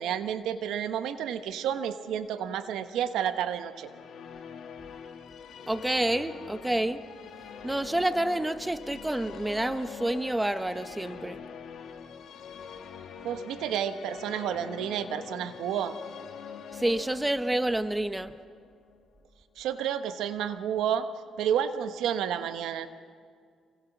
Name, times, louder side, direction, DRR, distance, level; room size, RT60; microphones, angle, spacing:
voice 1, 0.0-3.9 13.2-16.0 19.6-21.1 21.4-22.9, right 9 dB, 85° right, 9 dB, 1.1 m, -30 dB
Musical instrument, 3.6-19.0, left 7 dB, 70° left, 1.7 m, -45 dB
voice 2, 5.7-7.0 7.6-11.4 16.7-18.4, right 1 dB, 10° right, 11 dB, 0.9 m, -28 dB
27.0 x 23.5 x 6.0 m, 2.1 s
cardioid pair, 90°, 0 cm